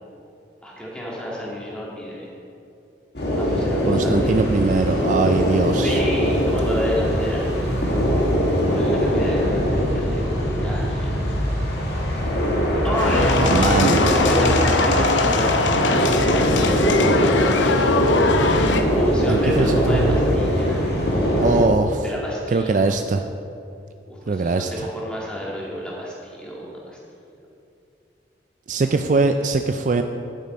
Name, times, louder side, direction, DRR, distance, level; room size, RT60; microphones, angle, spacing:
voice 1, 0.6-2.3 3.4-4.4 5.8-8.0 8.7-11.7 12.8-16.3 18.6-20.9 22.0-22.9 24.1-27.0, equal, 5° left, -5 dB, 2.0 m, -30 dB
sound 1, 3.2-21.6, equal, 55° left, 1.9 m, -21 dB
voice 2, 3.9-6.0 13.4-14.0 19.3-20.2 21.4-22.0 22.5-23.2 24.3-24.9 28.7-30.0, right 3 dB, 40° right, 7 dB, 0.3 m, -21 dB
sound 2, 12.9-18.8, left 3 dB, 75° left, 0.7 m, -21 dB
11.0 x 9.1 x 4.3 m, 2.7 s
head